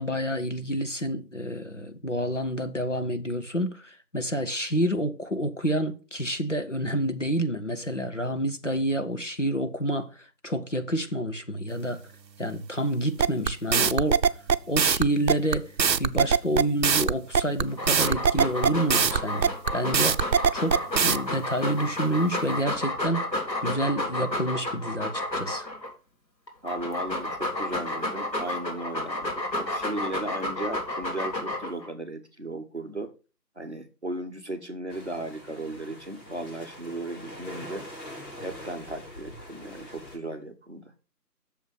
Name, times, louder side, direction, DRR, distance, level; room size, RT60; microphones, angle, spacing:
voice 1, 0.0-12.0 12.4-14.2 14.7-20.2 20.5-23.3 23.6-25.7, right 1 dB, 45° left, 0.8 m, -28 dB
sound 1, 13.2-21.2, right 6 dB, 85° right, 0.6 m, -22 dB
Dog, 17.7-25.9 26.5-31.9, left 1 dB, 85° left, 2.7 m, -31 dB
voice 2, 26.6-33.1 33.6-37.9 38.4-40.8, right 1 dB, 40° right, 1.0 m, -36 dB
sound 2, 34.9-40.2, left 1 dB, 65° left, 5.4 m, -43 dB
6.9 x 5.3 x 5.7 m
figure-of-eight pair, 165°, 50 cm